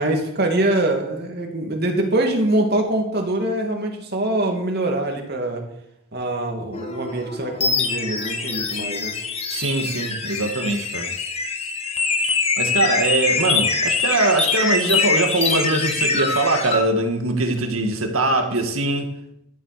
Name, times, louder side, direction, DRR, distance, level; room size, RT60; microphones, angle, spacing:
voice 1, 0.0-5.6 6.1-9.1, right 1 dB, 50° right, 2.5 m, -23 dB
sound 1, 6.7-16.8, left 4 dB, 30° left, 1.7 m, -24 dB
voice 2, 9.5-11.1 12.6-19.1, right 2 dB, 85° right, 2.0 m, -22 dB
13.0 x 7.8 x 6.8 m
head